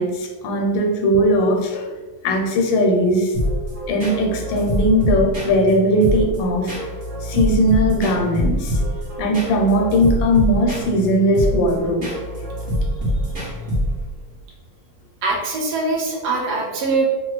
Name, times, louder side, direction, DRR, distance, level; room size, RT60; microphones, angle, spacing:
voice 1, 0.0-1.9 2.2-3.3 3.9-6.7 7.2-8.8 9.2-12.1, equal, 85° left, 2 dB, 1.3 m, -19 dB
sound 1, 3.3-14.2, equal, 45° right, 0.6 m, -25 dB
voice 2, 15.2-17.1, right 3 dB, 70° right, -1 dB, 1.1 m, -22 dB
2.9 x 2.3 x 3.1 m, 1.2 s
omnidirectional pair, 2.0 m